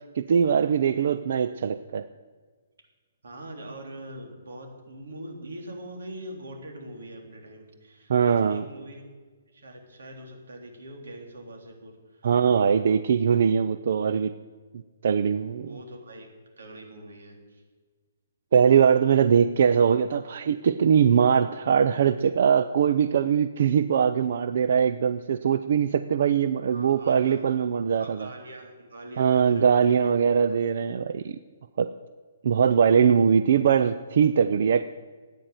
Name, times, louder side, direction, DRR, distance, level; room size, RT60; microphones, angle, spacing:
voice 1, 0.2-2.1 8.1-8.6 12.2-14.3 15.0-15.7 18.5-28.3 29.2-31.4 31.8-31.9 32.4-34.8, right 7 dB, 45° right, 12 dB, 0.4 m, -21 dB
voice 2, 3.2-9.0 9.5-12.2 15.6-17.6 26.7-27.5 27.9-30.1 30.5-30.6, right 1 dB, 85° right, 2 dB, 3.7 m, -42 dB
14.0 x 9.2 x 8.0 m, 1.4 s
hypercardioid pair, 180°, 0 cm